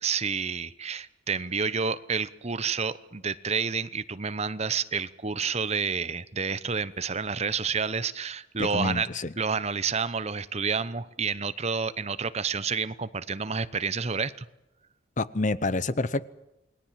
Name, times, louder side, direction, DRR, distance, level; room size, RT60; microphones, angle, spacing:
voice 1, 0.0-9.1 9.4-14.3, right 5 dB, 35° right, 15 dB, 0.8 m, -29 dB
voice 2, 8.6-9.3 15.2-16.3, left 2 dB, 40° left, 15 dB, 0.9 m, -28 dB
29.0 x 20.5 x 7.5 m, 0.90 s
head